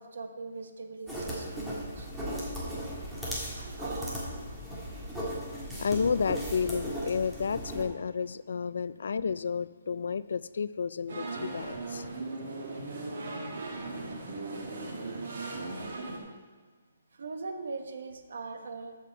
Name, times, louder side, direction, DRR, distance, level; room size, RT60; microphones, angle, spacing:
voice 1, 0.0-2.1 3.2-4.2 5.8-5.9 13.9-14.3 17.1-19.0, right 4 dB, 70° right, 1.2 m, -41 dB
sound 1, 1.1-7.8, equal, 5° right, 1.6 m, -36 dB
voice 2, 5.2-12.1, left 6 dB, 65° left, 0.4 m, -31 dB
sound 2, 11.1-16.2, right 3 dB, 55° right, 2.2 m, -38 dB
14.0 x 5.8 x 4.6 m
hypercardioid pair, 175°, 0 cm